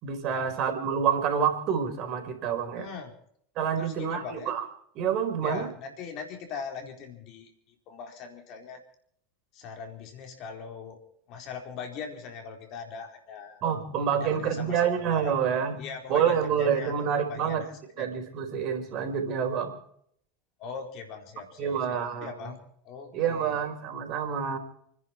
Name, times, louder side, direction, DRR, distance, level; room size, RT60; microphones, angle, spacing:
voice 1, 0.0-2.9 3.6-4.6 4.9-5.7 13.6-15.8 16.1-17.6 18.0-19.8 21.6-22.5 23.1-24.6, right 7 dB, 50° right, 5 dB, 4.4 m, -27 dB
voice 2, 2.8-3.2 3.8-4.5 5.4-8.8 9.5-11.0 11.3-13.6 14.2-15.4 15.8-16.9 17.3-18.1 20.6-23.6, left 5 dB, 55° left, 4 dB, 4.2 m, -41 dB
30.0 x 10.5 x 4.5 m, 0.66 s
hypercardioid pair, 80°, 0 cm